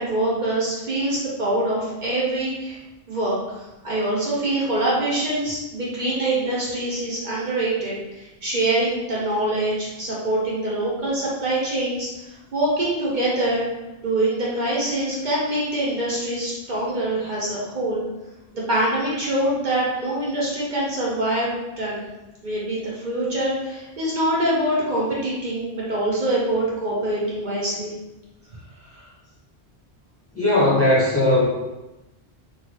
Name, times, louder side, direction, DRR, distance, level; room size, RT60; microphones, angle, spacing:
voice 1, 0.0-2.8 3.1-3.4 3.8-12.1 12.5-13.7 14.0-18.0 18.5-22.0 22.4-27.9, right 1 dB, 50° right, -6 dB, 0.9 m, -24 dB
voice 2, 30.3-31.4, left 1 dB, 15° left, -8 dB, 1.1 m, -18 dB
3.0 x 2.6 x 3.0 m, 1.0 s
omnidirectional pair, 1.1 m